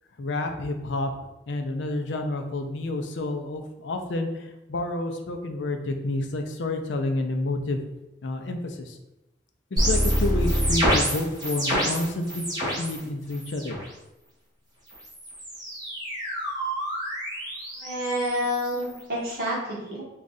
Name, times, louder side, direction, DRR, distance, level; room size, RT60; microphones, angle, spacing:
voice 1, 0.2-1.1 1.5-7.8 8.2-9.0 9.7-12.5 12.8-13.8, left 2 dB, 70° left, 5 dB, 0.5 m, -29 dB
sound 1, 9.8-13.0 13.3-13.9 14.9-19.0, equal, 20° right, 1.2 m, -27 dB
voice 2, 17.8-20.0, equal, 50° right, -7 dB, 1.3 m, -28 dB
3.6 x 2.4 x 4.0 m, 0.96 s
head